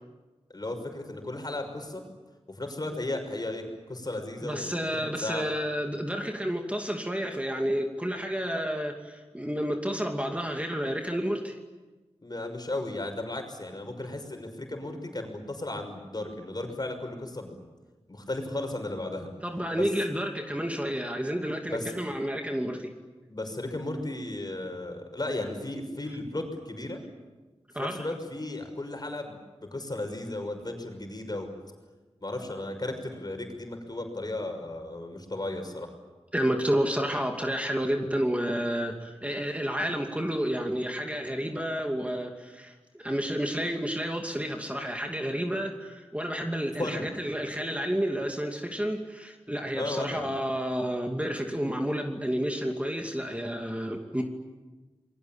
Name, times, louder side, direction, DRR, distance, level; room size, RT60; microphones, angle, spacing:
voice 1, 0.5-2.0 2.5-5.5 12.2-17.6 18.1-19.3 19.7-19.9 21.7-21.9 23.3-27.0 27.8-31.5 32.2-35.9 46.8-47.1 49.7-50.2, left 2 dB, 40° left, 5 dB, 6.0 m, -35 dB
voice 2, 4.4-11.6 19.4-22.9 27.7-28.0 36.3-54.2, equal, 10° right, 3 dB, 2.6 m, -30 dB
28.5 x 22.5 x 8.9 m, 1.2 s
wide cardioid pair, 70°, 11 cm